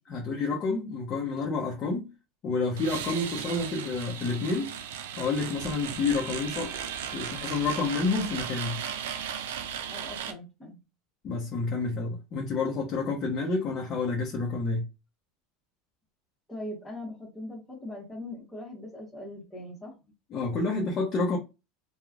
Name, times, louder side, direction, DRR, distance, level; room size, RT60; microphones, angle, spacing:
voice 1, 0.1-2.1 2.4-4.7 5.2-6.8 7.1-8.8 11.2-14.8 20.3-21.4, left 3 dB, 40° left, 0.7 m, -29 dB
sound 1, 2.8-10.3, right 8 dB, 85° right, 0.4 m, -36 dB
voice 2, 9.9-10.8 16.5-20.1, left 1 dB, 15° left, 1.1 m, -41 dB
3.0 x 2.3 x 2.4 m
supercardioid pair, 110°, 0 cm